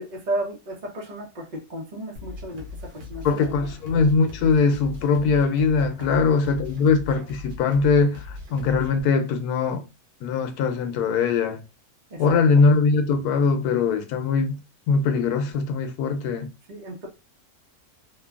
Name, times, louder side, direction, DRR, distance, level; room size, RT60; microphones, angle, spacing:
voice 1, 0.0-3.5 6.0-6.2 12.1-12.4 16.7-17.1, right 1 dB, 40° right, 0.6 m, -33 dB
sound 1, 2.2-9.0, left 3 dB, 60° right, 1.1 m, -39 dB
voice 2, 3.2-9.8 10.2-11.6 12.2-14.6 14.9-16.5, left 4 dB, 85° left, 1.1 m, -21 dB
2.9 x 2.2 x 2.3 m
omnidirectional pair, 1.6 m